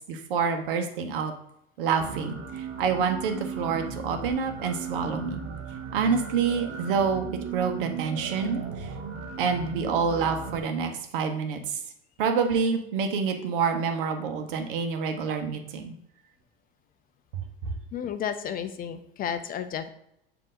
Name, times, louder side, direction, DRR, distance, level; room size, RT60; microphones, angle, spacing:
voice 1, 0.0-1.3 1.8-5.4 5.9-7.2 7.5-8.9 9.4-11.8 12.2-15.9 17.6-17.7, right 5 dB, 65° right, 6 dB, 1.1 m, -27 dB
sound 1, 2.0-10.6, right 6 dB, 40° right, 1.0 m, -37 dB
voice 2, 17.9-19.9, left 8 dB, 30° left, 9 dB, 0.5 m, -32 dB
7.5 x 2.9 x 4.9 m, 0.77 s
figure-of-eight pair, 80°, 30 cm